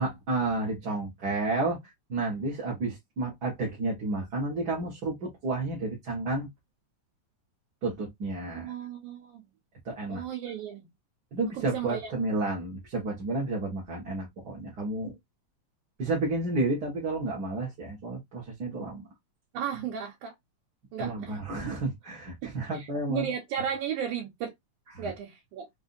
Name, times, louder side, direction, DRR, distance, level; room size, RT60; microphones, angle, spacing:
voice 1, 0.0-6.5 7.8-8.7 9.8-10.2 11.3-15.1 16.0-19.1 21.0-23.3 24.9-25.1, right 2 dB, 50° right, 1.3 m, -31 dB
voice 2, 8.5-9.4 10.1-10.9 11.6-12.2 19.5-20.3 20.9-21.4 22.4-24.5 25.0-25.7, right 8 dB, 85° right, 2.4 m, -35 dB
5.3 x 2.6 x 2.5 m
omnidirectional pair, 3.4 m